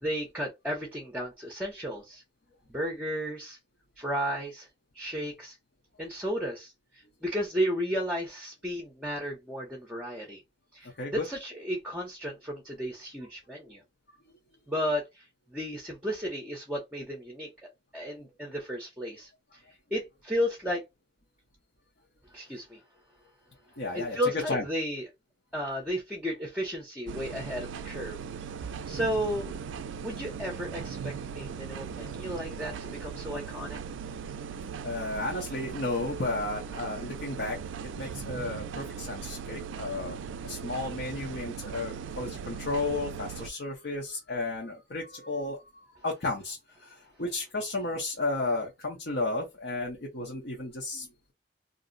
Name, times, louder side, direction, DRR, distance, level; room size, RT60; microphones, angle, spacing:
voice 1, 0.0-2.2 2.7-3.6 4.0-4.7 4.9-5.6 6.0-10.4 10.7-13.8 14.7-19.6 19.9-20.8 22.3-22.8 23.9-25.1 25.5-28.2 28.6-29.5 30.0-33.8, equal, 5° right, 0.6 m, -33 dB
voice 2, 23.8-24.2 24.5-24.6 34.8-37.6 38.0-45.6 45.9-51.3, left 2 dB, 65° left, 0.7 m, -33 dB
sound 1, 27.1-43.5, right 6 dB, 90° right, 0.3 m, -39 dB
2.5 x 2.0 x 3.7 m
head